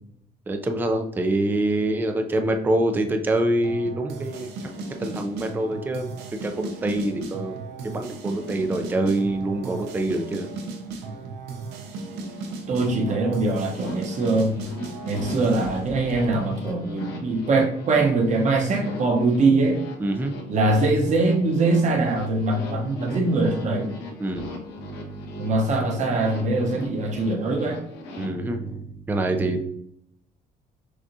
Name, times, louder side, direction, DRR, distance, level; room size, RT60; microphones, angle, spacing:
voice 1, 0.5-4.5 5.0-6.2 6.4-7.6 7.8-10.5 20.0-20.3 24.2-24.5 24.8-25.5 28.2-29.6, right 1 dB, 10° right, 5 dB, 0.4 m, -25 dB
sound 1, 3.6-16.6, right 3 dB, 90° right, 0.7 m, -36 dB
voice 2, 12.7-14.6 15.0-19.8 20.5-23.9 25.4-27.8, right 2 dB, 45° right, 1 dB, 0.9 m, -22 dB
sound 2, 13.5-28.3, left 2 dB, 80° left, 1.0 m, -40 dB
6.0 x 2.4 x 2.7 m, 0.73 s
cardioid pair, 110°, 17 cm